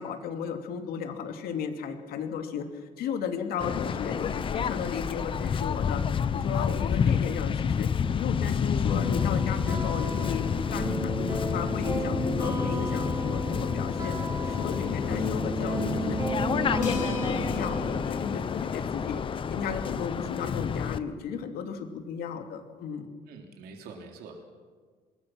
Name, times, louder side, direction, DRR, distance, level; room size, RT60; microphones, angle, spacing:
voice 1, 0.0-2.7 3.0-6.0 6.3-7.9 8.2-14.1 14.4-16.2 16.5-19.2 19.5-23.1, left 7 dB, 75° left, 5 dB, 2.8 m, -34 dB
Waves surf, 3.6-21.0, left 7 dB, 35° left, 0.8 m, -29 dB
sound 1, 8.8-18.0, right 2 dB, 20° right, 5.8 m, -34 dB
sound 2, 16.8-19.3, left 8 dB, 55° left, 4.5 m, -46 dB
voice 2, 23.3-24.4, right 4 dB, 80° right, 2 dB, 3.5 m, -45 dB
25.5 x 21.5 x 6.1 m, 1.5 s
cardioid pair, 130°, 16 cm